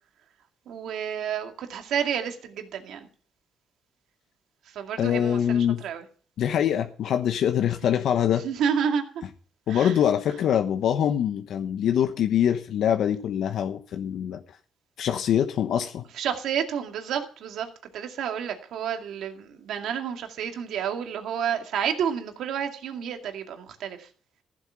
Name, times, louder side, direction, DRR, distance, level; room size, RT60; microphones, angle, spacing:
voice 1, 0.7-3.1 4.7-6.0 7.8-8.0 8.4-9.2 9.7-10.0 16.1-24.1, right 8 dB, 80° right, 5 dB, 2.2 m, -30 dB
voice 2, 5.0-5.8 6.4-8.4 9.7-14.4 15.0-16.0, left 9 dB, 75° left, 6 dB, 1.0 m, -24 dB
14.5 x 8.1 x 5.8 m, 0.43 s
cardioid pair, 90°, 0 cm